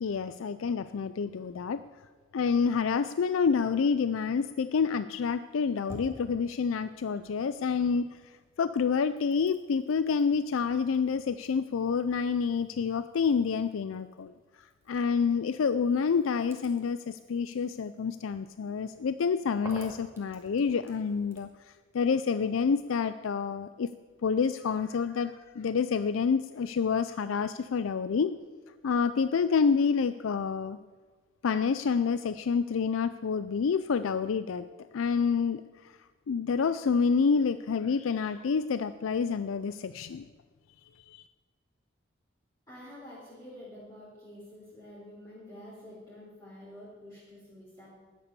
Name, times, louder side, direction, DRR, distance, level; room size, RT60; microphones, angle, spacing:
voice 1, 0.0-1.8 2.3-23.9 24.2-28.3 28.8-30.8 31.4-34.7 34.9-36.0 36.3-40.2 41.1-41.2, left 5 dB, 85° left, 13 dB, 0.4 m, -28 dB
sound 1, 5.3-8.0 8.3-21.6, equal, 15° right, 2.1 m, -54 dB
voice 2, 42.7-47.9, left 1 dB, 20° left, -9 dB, 4.1 m, -48 dB
13.5 x 9.8 x 6.9 m, 1.4 s
head